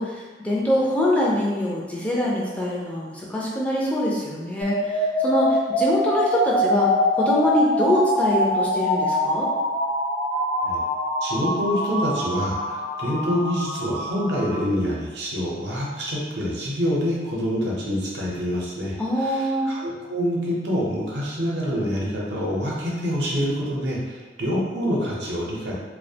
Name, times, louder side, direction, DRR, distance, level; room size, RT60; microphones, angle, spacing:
voice 1, 0.0-9.5 19.0-19.7, left 1 dB, 10° left, -5 dB, 0.3 m, -24 dB
sound 1, 4.6-14.6, left 1 dB, 75° left, 0.8 m, -24 dB
voice 2, 11.2-25.7, equal, 75° right, -4 dB, 0.6 m, -26 dB
2.3 x 2.1 x 2.6 m, 1.3 s
head